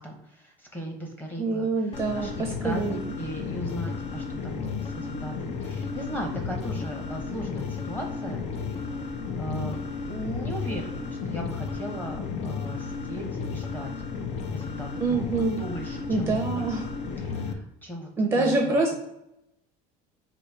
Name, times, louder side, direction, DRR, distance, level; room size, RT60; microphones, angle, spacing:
voice 1, 0.0-8.8 9.4-9.8 10.1-13.9 14.5-16.7 17.2-18.8, right 1 dB, 10° left, 1 dB, 1.0 m, -38 dB
voice 2, 1.4-3.0 15.0-15.6 16.1-16.9 18.2-18.9, right 3 dB, 15° right, 0 dB, 0.7 m, -25 dB
sound 1, 1.9-17.5, left 5 dB, 40° left, 0.5 m, -33 dB
4.1 x 2.7 x 4.7 m, 0.86 s
cardioid pair, 160°, 17 cm